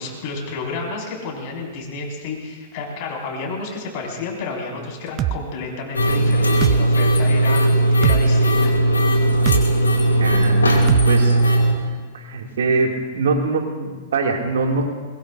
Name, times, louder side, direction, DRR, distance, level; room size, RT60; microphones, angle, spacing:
voice 1, 0.0-8.7, left 3 dB, 45° left, -1 dB, 5.2 m, -31 dB
sound 1, 5.2-5.4 6.6-6.8 8.0-8.2 9.5-9.6 10.9-11.1, right 13 dB, 35° right, 0.5 m, -21 dB
sound 2, 5.9-11.7, right 1 dB, 80° left, 2.5 m, -17 dB
voice 2, 10.2-14.9, right 4 dB, 65° right, 1 dB, 2.5 m, -24 dB
22.0 x 21.5 x 2.6 m, 1.4 s
figure-of-eight pair, 100°, 0 cm